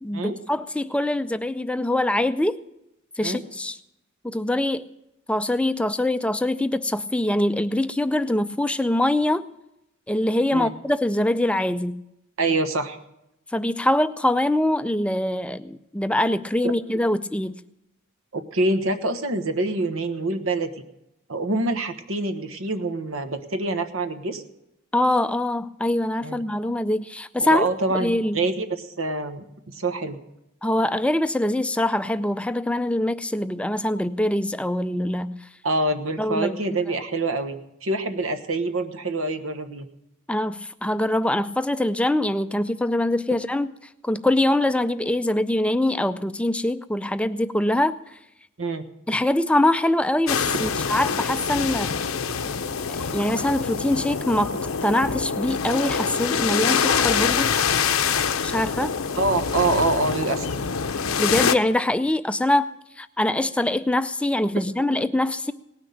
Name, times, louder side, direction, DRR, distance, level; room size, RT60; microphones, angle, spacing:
voice 1, 0.0-2.6 3.2-3.8 4.2-4.8 5.3-9.5 10.1-12.0 13.5-17.5 24.9-27.6 27.9-28.4 30.6-35.4 36.2-36.6 40.3-43.7 44.0-48.0 49.1-51.9 52.9-54.5 54.8-57.5 58.4-59.0 61.2-62.7 63.0-65.5, left 1 dB, 5° left, 12 dB, 0.4 m, -23 dB
voice 2, 12.4-13.0 18.3-20.7 21.3-24.4 26.2-26.4 27.4-30.2 35.6-39.9 48.6-48.8 59.2-60.5 64.9-65.0, right 2 dB, 75° right, 9 dB, 1.2 m, -26 dB
sound 1, 50.3-61.5, left 6 dB, 85° left, 0.7 m, -25 dB
18.5 x 6.2 x 9.1 m, 0.86 s
head